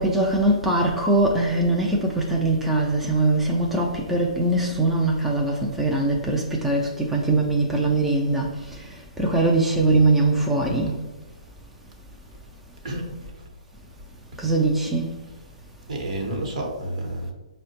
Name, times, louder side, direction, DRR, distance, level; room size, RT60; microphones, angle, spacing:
voice 1, 0.0-8.5 9.2-11.0 14.4-15.1, right 2 dB, 5° right, -1 dB, 0.3 m, -21 dB
voice 2, 15.9-17.3, right 1 dB, 65° right, 1 dB, 0.9 m, -30 dB
4.8 x 2.1 x 2.8 m, 1.1 s
hypercardioid pair, 135°, 4 cm